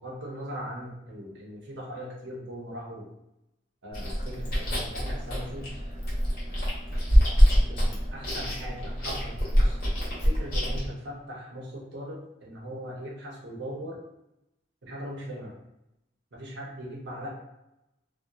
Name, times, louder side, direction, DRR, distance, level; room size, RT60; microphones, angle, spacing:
voice 1, 0.0-3.1 3.8-5.7 7.5-9.8 10.2-14.0 14.8-15.6 16.3-17.3, equal, 85° right, -2 dB, 0.7 m, -39 dB
Chewing mastication, 3.9-10.9, equal, 55° left, 0.9 m, -25 dB
2.8 x 2.0 x 2.3 m, 0.87 s
head